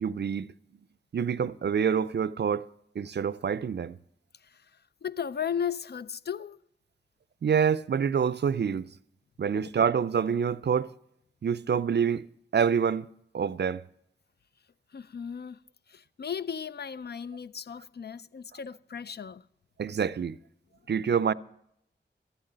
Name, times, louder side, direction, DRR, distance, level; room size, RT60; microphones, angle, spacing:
voice 1, 0.0-0.5 1.1-2.7 3.0-4.0 7.4-8.9 9.4-10.9 11.4-13.8 19.8-20.4 20.9-21.3, right 7 dB, 60° right, 0.4 m, -27 dB
voice 2, 5.0-6.6 9.6-9.7 14.9-15.6 15.9-19.4, left 7 dB, 60° left, 0.4 m, -35 dB
13.0 x 8.8 x 6.7 m
wide cardioid pair, 65°, 19 cm